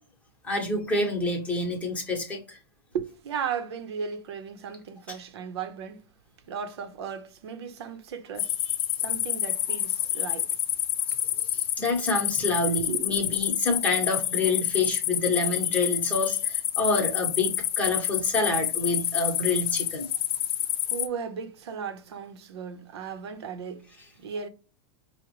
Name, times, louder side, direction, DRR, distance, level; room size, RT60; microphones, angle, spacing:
voice 1, 0.4-2.6 5.1-5.2 11.4-20.1, left 2 dB, 10° left, 1.0 m, -27 dB
voice 2, 2.9-6.1 6.5-8.6 9.0-10.5 12.8-13.3 20.9-23.9 24.2-24.5, right 6 dB, 80° right, 0.7 m, -36 dB
sound 1, 8.4-21.1, left 12 dB, 60° left, 0.5 m, -28 dB
4.8 x 2.1 x 2.9 m
supercardioid pair, 155°, 14 cm